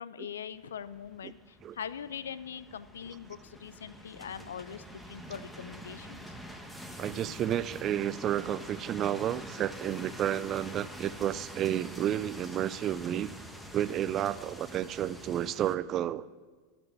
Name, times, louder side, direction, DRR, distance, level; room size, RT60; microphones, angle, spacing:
voice 1, 0.0-6.2, left 8 dB, 85° left, 16 dB, 0.5 m, -42 dB
sound 1, 0.5-15.8, equal, 5° left, 1.2 m, -46 dB
voice 2, 7.0-13.3 13.7-16.3, right 11 dB, 40° right, 16 dB, 0.4 m, -31 dB
12.0 x 6.1 x 8.0 m, 1.4 s
hypercardioid pair, 100°, 0 cm